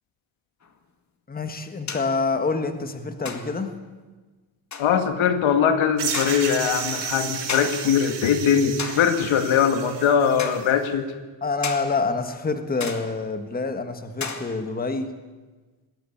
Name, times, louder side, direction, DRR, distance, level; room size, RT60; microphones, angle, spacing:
sound 1, 0.6-0.7 1.9-2.2 3.2-3.7 4.7-5.0 6.1-6.6 7.5-8.0 8.8-9.2 10.4-10.7 11.6-12.0 12.8-13.3 14.2-14.8, left 5 dB, 35° left, 2.1 m, -34 dB
voice 1, 1.3-3.7 11.4-15.1, left 4 dB, 20° left, 7 dB, 1.5 m, -27 dB
voice 2, 4.8-11.1, left 7 dB, 85° left, 7 dB, 2.1 m, -21 dB
sound 2, 6.0-10.7, right 6 dB, 60° right, 3.7 m, -32 dB
20.5 x 16.5 x 8.6 m, 1.3 s
cardioid pair, 140°, 46 cm